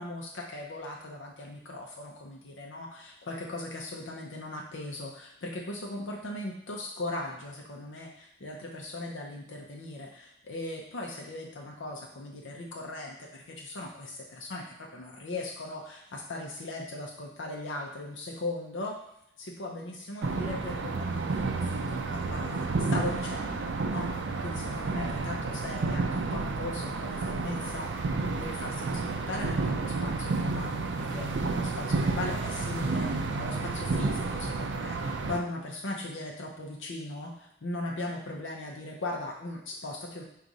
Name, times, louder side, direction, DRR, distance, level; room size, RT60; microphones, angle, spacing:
voice 1, 0.0-19.0 19.4-40.2, left 2 dB, 80° left, -1 dB, 0.6 m, -38 dB
sound 1, 20.2-35.4, right 3 dB, 70° right, 0.4 m, -31 dB
4.8 x 2.4 x 3.9 m, 0.79 s
head